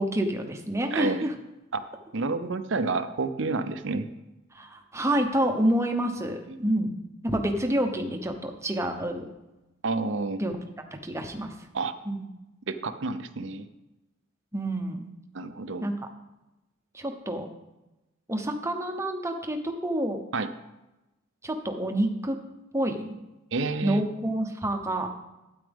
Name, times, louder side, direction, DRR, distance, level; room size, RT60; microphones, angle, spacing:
voice 1, 0.0-1.3 4.5-7.0 7.2-9.3 10.4-10.6 11.0-11.6 12.0-12.2 14.5-15.1 15.8-16.0 16.9-17.5 18.3-20.2 21.4-22.4 22.7-23.2 23.8-25.1, right 1 dB, 15° right, 4 dB, 0.9 m, -28 dB
voice 2, 0.9-1.3 1.7-1.8 2.1-4.1 6.5-6.6 9.8-10.4 11.7-12.0 12.7-13.7 15.3-15.9 20.3-20.5 23.5-24.0, right 3 dB, 60° right, 9 dB, 0.7 m, -29 dB
12.5 x 8.9 x 3.6 m, 1.0 s
head